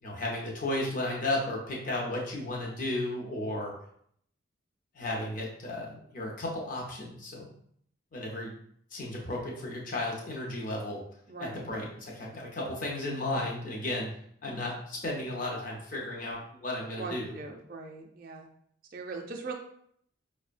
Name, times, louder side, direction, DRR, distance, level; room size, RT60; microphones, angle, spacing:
voice 1, 0.0-3.7 4.9-7.5 8.1-8.6 8.9-11.0 11.4-14.1 14.4-17.4, left 1 dB, 40° left, -2 dB, 0.6 m, -34 dB
voice 2, 11.3-11.6 16.9-18.5 18.9-19.5, right 4 dB, 45° right, 1 dB, 0.4 m, -40 dB
5.1 x 2.1 x 2.5 m, 0.67 s
head